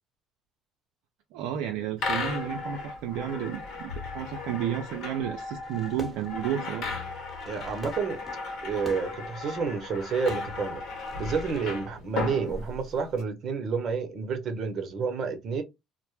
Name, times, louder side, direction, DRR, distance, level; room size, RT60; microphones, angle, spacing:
voice 1, 1.3-7.0, right 10 dB, 80° right, 0.3 m, -32 dB
sound 1, 2.0-13.2, left 3 dB, 65° left, 1.0 m, -36 dB
Fireworks, 5.6-11.6, left 1 dB, 10° left, 1.0 m, -46 dB
voice 2, 7.5-8.2 8.6-10.8 11.2-15.6, right 5 dB, 55° right, 0.7 m, -30 dB
2.1 x 2.0 x 3.0 m
supercardioid pair, 75°, 0 cm